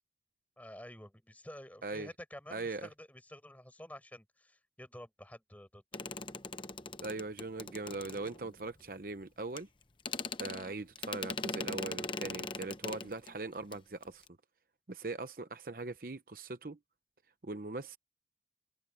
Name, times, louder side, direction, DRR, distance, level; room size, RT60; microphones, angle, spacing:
voice 1, 0.6-5.8, left 1 dB, 10° left, 5.9 m, -50 dB
voice 2, 2.5-2.9 7.0-9.7 10.4-14.3 14.9-16.8 17.4-18.0, right 3 dB, 50° right, 0.9 m, -40 dB
sound 1, 5.9-8.7 9.6-9.7 10.0-13.3 13.6-13.8 14.0-14.3, left 4 dB, 30° left, 0.9 m, -40 dB
open air
head